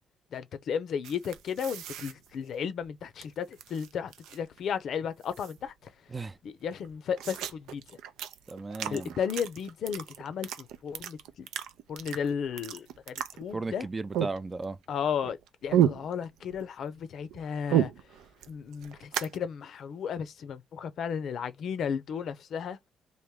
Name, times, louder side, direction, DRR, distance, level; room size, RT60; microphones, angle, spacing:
voice 1, 0.3-5.7 6.4-7.8 8.9-11.5 11.9-13.9 14.9-15.4 15.6-17.9 18.5-22.8, left 7 dB, 65° left, 0.5 m, -34 dB
sound 1, 1.0-3.2 3.5-4.6 4.8-4.9 5.2-5.9 6.3-6.4 6.6-13.8 14.1-14.8 15.1-16.7 17.0-19.4, right 11 dB, 90° right, 0.4 m, -33 dB
voice 2, 8.5-9.2 13.5-14.8, right 3 dB, 25° right, 0.4 m, -35 dB
3.1 x 2.5 x 3.5 m
cardioid pair, 90°, 0 cm